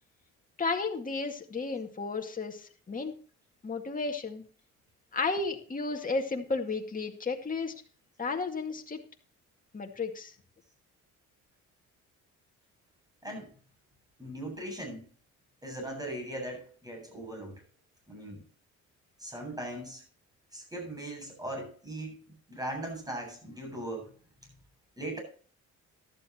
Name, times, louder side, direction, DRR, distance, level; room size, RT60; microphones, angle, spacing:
voice 1, 0.6-3.1 3.6-4.4 5.1-7.7 8.2-9.0 9.7-10.3, left 4 dB, 25° left, 2 dB, 2.1 m, -33 dB
voice 2, 13.2-13.5 14.2-15.1 15.6-17.6 18.1-18.4 19.2-20.0 20.5-24.1 25.0-25.2, right 1 dB, 10° right, 2 dB, 8.0 m, -39 dB
13.5 x 12.5 x 3.1 m, 0.41 s
cardioid pair, 90°, 30 cm